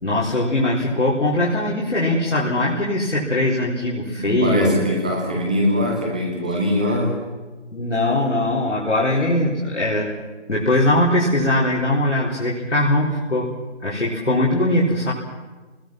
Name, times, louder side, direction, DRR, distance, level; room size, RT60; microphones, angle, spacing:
voice 1, 0.0-4.8 7.7-10.1 10.5-13.5 13.8-15.1, left 1 dB, 75° left, -5 dB, 4.4 m, -20 dB
voice 2, 4.2-7.1, left 1 dB, 5° right, -1 dB, 1.1 m, -22 dB
30.0 x 20.5 x 6.1 m, 1.3 s
figure-of-eight pair, 165°, 35 cm